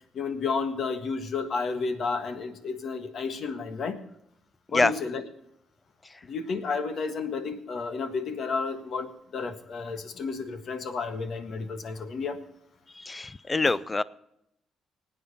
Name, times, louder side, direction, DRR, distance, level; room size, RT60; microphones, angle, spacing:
voice 1, 0.1-4.0 4.7-5.2 6.3-12.4, left 4 dB, 60° left, 7 dB, 1.5 m, -31 dB
voice 2, 12.9-14.0, left 3 dB, 20° left, 18 dB, 0.4 m, -25 dB
20.0 x 9.0 x 4.2 m, 0.79 s
cardioid pair, 90°, 0 cm